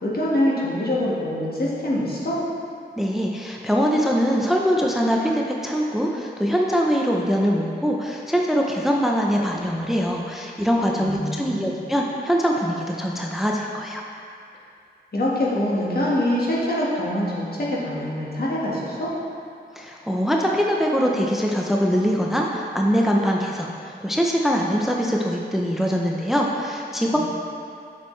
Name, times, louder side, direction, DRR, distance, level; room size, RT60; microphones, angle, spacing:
voice 1, 0.0-2.4 10.9-11.8 15.1-19.1 27.1-27.2, left 1 dB, 60° left, -6 dB, 1.6 m, -24 dB
voice 2, 3.0-14.0 19.8-27.2, equal, ahead, -1 dB, 0.5 m, -23 dB
7.1 x 6.4 x 3.2 m, 2.4 s
wide cardioid pair, 80°, 18 cm